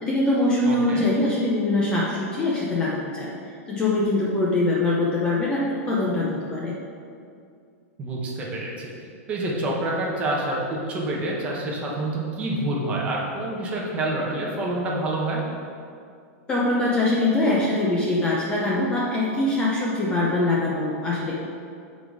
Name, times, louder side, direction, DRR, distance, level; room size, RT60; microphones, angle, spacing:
voice 1, 0.0-3.3 3.7-6.8 16.5-21.4, left 2 dB, 10° left, -5 dB, 0.6 m, -23 dB
voice 2, 0.6-1.1 8.0-8.9 9.3-15.4, right 2 dB, 15° right, -3 dB, 1.0 m, -27 dB
8.7 x 4.0 x 4.8 m, 2.4 s
supercardioid pair, 175°, 8 cm